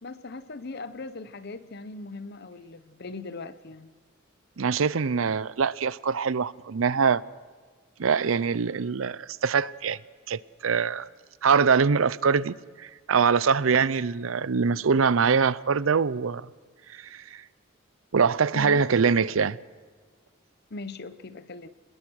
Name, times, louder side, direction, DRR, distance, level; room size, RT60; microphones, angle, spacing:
voice 1, 0.0-3.9 18.5-18.8 20.7-21.7, left 3 dB, 55° left, 0.9 m, -39 dB
voice 2, 4.6-7.2 8.0-10.0 10.3-11.1 11.4-16.5 16.9-17.4 18.1-19.6, right 5 dB, 90° right, 0.6 m, -23 dB
25.5 x 20.5 x 6.4 m
head